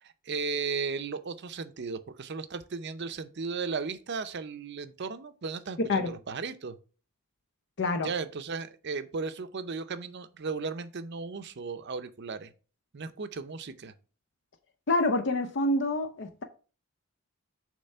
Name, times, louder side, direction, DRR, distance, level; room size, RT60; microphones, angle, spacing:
voice 1, 0.0-6.8 8.0-12.5 12.9-13.9, right 4 dB, 50° right, 0.6 m, -35 dB
voice 2, 7.8-8.1 14.9-16.4, left 2 dB, 55° left, 0.6 m, -27 dB
6.7 x 3.2 x 5.4 m
head